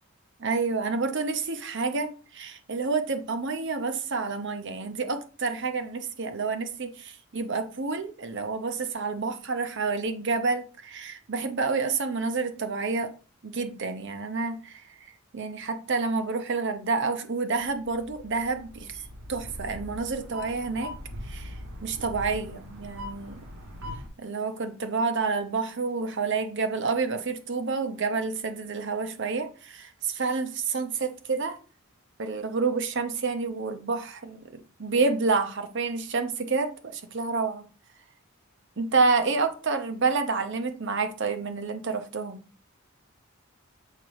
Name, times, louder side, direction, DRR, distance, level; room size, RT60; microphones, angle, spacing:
voice 1, 0.4-13.1 13.4-14.8 15.3-19.0 19.3-20.9 21.3-21.5 21.8-23.4 24.2-31.6 32.2-34.4 34.8-37.6 38.8-42.4, right 4 dB, 55° right, 0.9 m, -29 dB
sound 1, 17.5-24.1, left 1 dB, 80° right, 2.2 m, -41 dB
6.7 x 5.2 x 3.1 m
head